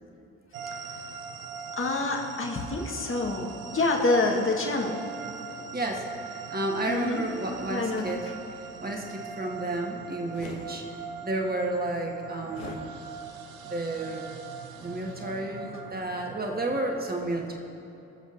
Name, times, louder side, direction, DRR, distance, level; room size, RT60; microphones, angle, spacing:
sound 1, 0.5-16.9, right 6 dB, 90° right, 0.6 m, -42 dB
voice 1, 1.8-5.0 6.9-7.2 7.7-8.2, left 2 dB, 30° left, 1 dB, 1.4 m, -27 dB
voice 2, 5.6-8.5 8.8-13.0 13.6-14.2 14.8-17.6, right 2 dB, 25° right, 1 dB, 1.5 m, -32 dB
sound 2, 10.3-10.7 12.5-12.8, left 4 dB, 85° left, 0.9 m, -41 dB
20.0 x 7.1 x 2.6 m, 2.7 s
hypercardioid pair, 40°, 40 cm